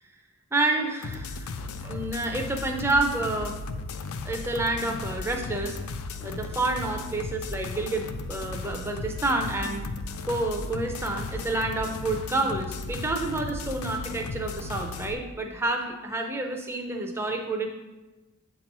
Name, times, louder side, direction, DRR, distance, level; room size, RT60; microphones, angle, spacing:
voice 1, 0.5-3.6 4.2-5.8 6.2-9.9 10.2-17.7, right 2 dB, 10° right, 3 dB, 0.5 m, -29 dB
sound 1, 1.0-15.1, left 3 dB, 80° left, 0.4 m, -36 dB
7.5 x 3.0 x 5.2 m, 1.1 s
head